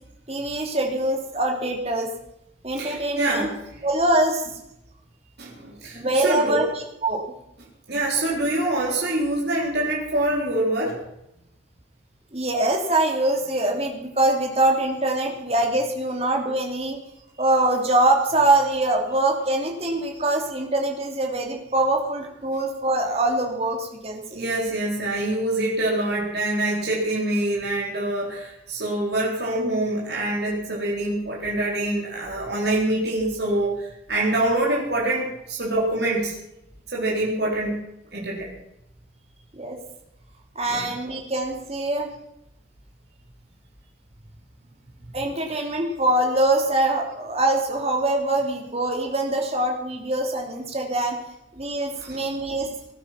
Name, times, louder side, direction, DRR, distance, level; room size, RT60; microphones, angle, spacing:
voice 1, 0.3-2.1 2.6-3.5 3.8-4.5 5.9-7.2 12.3-17.0 17.4-24.5 39.5-39.8 40.5-42.1 45.1-51.2 51.6-52.7, right 2 dB, 30° right, 2 dB, 3.2 m, -23 dB
voice 2, 2.8-3.5 5.4-6.7 7.9-11.0 24.3-33.7 34.1-36.4 36.9-37.8 38.1-38.5 40.7-40.9 45.5-45.6 52.0-52.2 52.5-52.7, right 1 dB, 55° right, -4 dB, 4.1 m, -25 dB
19.5 x 11.5 x 6.0 m, 0.84 s
head